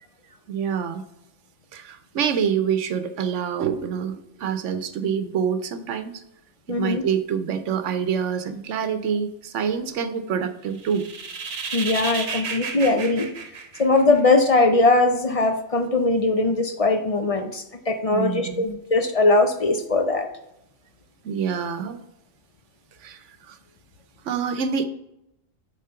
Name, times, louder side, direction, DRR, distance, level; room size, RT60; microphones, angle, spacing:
voice 1, 0.5-1.0 1.7-6.1 6.7-11.1 18.1-18.5 21.2-22.0 23.0-23.6 24.2-24.9, right 7 dB, 85° right, 11 dB, 1.1 m, -26 dB
voice 2, 6.7-7.0 11.7-13.3 13.8-20.3, left 2 dB, 40° left, 7 dB, 0.5 m, -20 dB
sound 1, 10.8-14.4, right 5 dB, 60° right, 1.2 m, -32 dB
7.4 x 4.1 x 5.6 m, 0.83 s
omnidirectional pair, 1.2 m